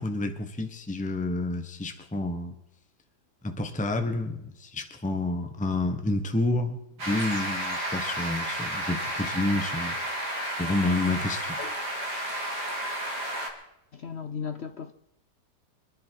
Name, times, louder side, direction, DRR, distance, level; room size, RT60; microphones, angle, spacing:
voice 1, 0.0-2.5 3.4-6.8 7.0-10.0 10.6-11.6, left 2 dB, 5° left, 1.0 m, -29 dB
sound 1, 7.0-13.5, right 1 dB, 65° right, 3.7 m, -32 dB
voice 2, 13.9-14.9, left 6 dB, 65° left, 0.6 m, -36 dB
26.0 x 10.5 x 4.7 m
omnidirectional pair, 1.9 m